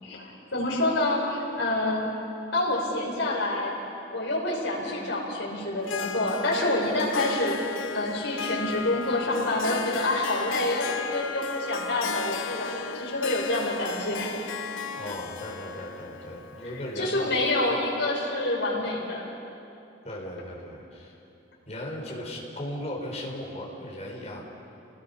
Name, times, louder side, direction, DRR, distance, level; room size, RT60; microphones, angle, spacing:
voice 1, 0.0-2.1 2.5-3.7 4.1-7.6 7.9-14.3 16.6-19.3, left 2 dB, 75° left, -3 dB, 5.8 m, -27 dB
Harp, 5.8-17.7, left 6 dB, 90° left, 0.8 m, -36 dB
voice 2, 15.0-17.3 20.0-21.2 21.7-24.4, left 1 dB, 35° left, -3 dB, 4.4 m, -37 dB
30.0 x 19.5 x 5.6 m, 2.8 s
head